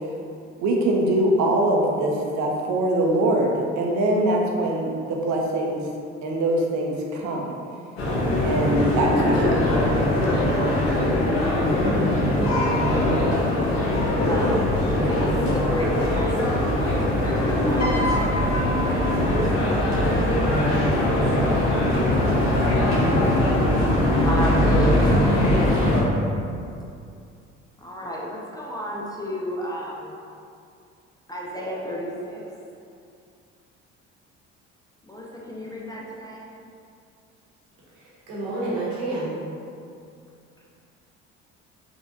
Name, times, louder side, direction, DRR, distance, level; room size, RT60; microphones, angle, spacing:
voice 1, 0.6-5.9 6.2-7.6 8.4-9.6, right 1 dB, 50° right, 0 dB, 0.6 m, -23 dB
sound 1, 8.0-26.0, left 1 dB, 65° left, 0.9 m, -21 dB
voice 2, 12.4-13.5 14.3-14.8 15.1-18.0 18.7-20.1 21.0-21.4 21.8-23.0 24.2-26.1 27.8-30.2 31.3-32.4 35.1-36.5, equal, 10° left, -4 dB, 0.4 m, -33 dB
Piano, 17.8-20.2 21.2-21.5, left 1 dB, 45° left, 1.3 m, -31 dB
voice 3, 38.0-39.4, right 2 dB, 70° right, -7 dB, 1.1 m, -29 dB
3.6 x 2.4 x 2.7 m, 2.4 s
hypercardioid pair, 55°, 36 cm